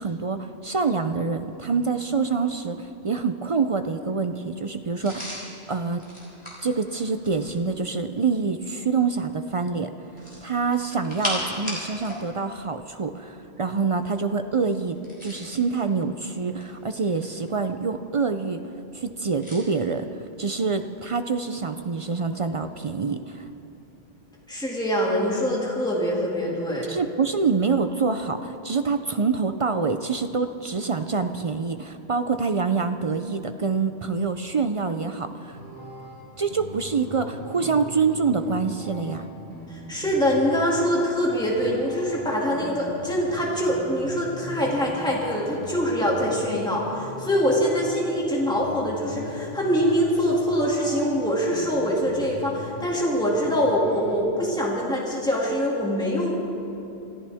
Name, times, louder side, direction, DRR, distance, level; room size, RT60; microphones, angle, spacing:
voice 1, 0.0-6.0 6.6-9.9 10.4-15.0 15.2-18.6 18.9-20.1 20.4-23.5 26.9-35.6 36.4-39.3, right 4 dB, 45° right, 8 dB, 0.4 m, -26 dB
sound 1, 5.0-7.7 10.1-12.2 12.5-12.7 14.9-15.6 16.4-17.5 19.4-19.7, equal, 25° left, 3.7 m, -35 dB
voice 2, 24.5-26.9 39.7-56.3, equal, 5° left, -4 dB, 2.3 m, -24 dB
sound 2, 35.5-54.2, left 1 dB, 85° right, 5.0 m, -40 dB
25.5 x 14.0 x 3.5 m, 2.9 s
omnidirectional pair, 1.1 m